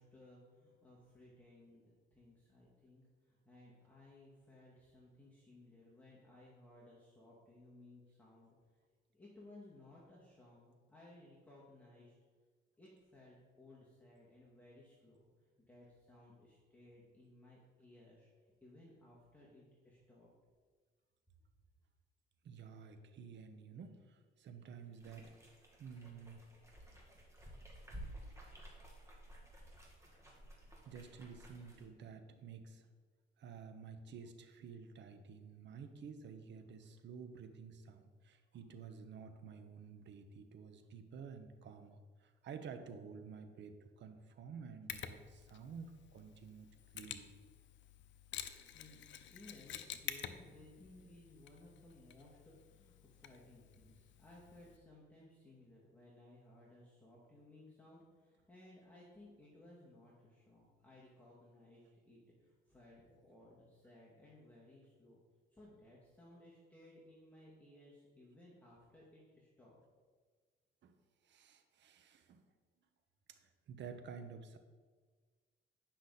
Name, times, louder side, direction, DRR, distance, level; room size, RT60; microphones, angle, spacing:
voice 1, 0.0-8.8 9.1-12.1 12.8-18.3 18.6-20.3 48.7-49.0 49.3-65.2 65.5-69.8, left 1 dB, 10° left, -7 dB, 2.1 m, -60 dB
voice 2, 22.4-25.5 25.8-26.4 30.8-32.9 33.4-47.3 70.8-71.0 71.2-72.4 73.3-74.6, right 6 dB, 65° right, 7 dB, 0.9 m, -52 dB
sound 1, 24.9-31.9, right 1 dB, 15° right, 2.1 m, -54 dB
Mechanisms, 44.9-54.8, left 10 dB, 70° left, 0.6 m, -50 dB
9.9 x 6.0 x 4.0 m, 1.5 s
cardioid pair, 90°, 20 cm